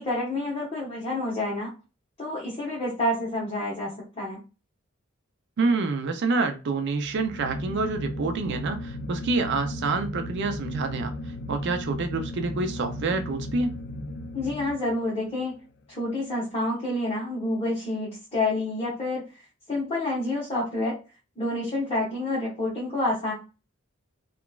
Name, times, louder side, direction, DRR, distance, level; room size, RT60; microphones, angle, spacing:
voice 1, 0.0-1.7 2.2-4.4 14.3-15.5 15.9-19.2 19.7-20.9 21.4-23.3, left 2 dB, 25° left, 1.0 m, -28 dB
voice 2, 5.6-11.1 11.5-13.7, right 3 dB, 55° right, 0.4 m, -27 dB
sound 1, 6.9-15.3, left 1 dB, 55° left, 0.3 m, -36 dB
2.9 x 2.4 x 2.2 m
head